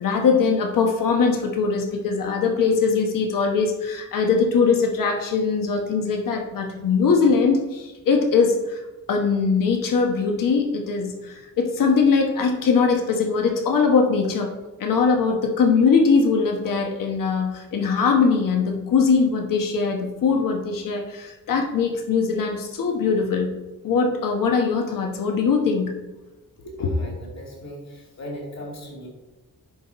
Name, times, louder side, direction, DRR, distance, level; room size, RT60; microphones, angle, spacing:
voice 1, 0.0-8.8 9.1-14.5 14.8-23.5 23.8-26.0 26.6-26.9, left 5 dB, 80° left, 2 dB, 1.2 m, -21 dB
voice 2, 26.8-29.1, left 1 dB, 55° left, -1 dB, 2.7 m, -38 dB
10.0 x 4.1 x 4.1 m, 1.1 s
wide cardioid pair, 130°, 32 cm